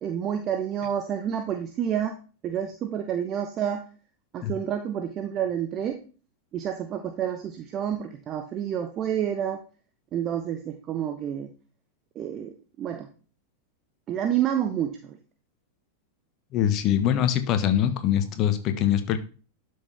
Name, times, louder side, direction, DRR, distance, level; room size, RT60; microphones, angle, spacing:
voice 1, 0.0-3.8 4.3-6.0 6.5-9.6 10.1-11.5 12.1-13.1 14.1-15.2, right 9 dB, 30° right, 7 dB, 0.9 m, -29 dB
voice 2, 16.5-19.2, left 10 dB, 35° left, 9 dB, 1.3 m, -23 dB
12.0 x 6.6 x 3.5 m, 0.37 s
figure-of-eight pair, 90°, 0 cm